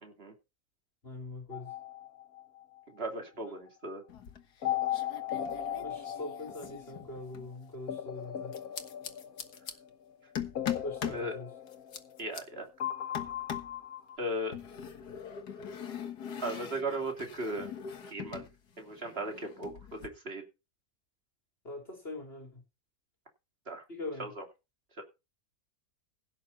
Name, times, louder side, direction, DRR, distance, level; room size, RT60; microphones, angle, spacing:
voice 1, 0.0-0.3 2.9-4.0 11.1-11.3 12.2-12.7 14.2-14.5 16.4-17.7 18.1-18.5 18.8-20.4 23.7-23.8 24.2-24.4 25.0-25.1, right 1 dB, 40° right, 3.1 m, -37 dB
voice 2, 1.0-1.7 5.8-8.6 10.8-11.5 21.6-22.6 23.9-24.3, left 2 dB, 35° left, 3.8 m, -42 dB
sound 1, 1.5-2.8 4.6-7.2 7.9-9.8 10.6-12.5 12.8-14.2, left 11 dB, 65° left, 1.6 m, -37 dB
sound 2, 4.1-4.6 4.9-7.5 8.5-9.7 10.4-11.3 11.7-12.4 13.1-13.8 14.5-18.5 18.8-20.1, left 8 dB, 85° left, 2.0 m, -41 dB
16.5 x 8.6 x 4.1 m
omnidirectional pair, 1.7 m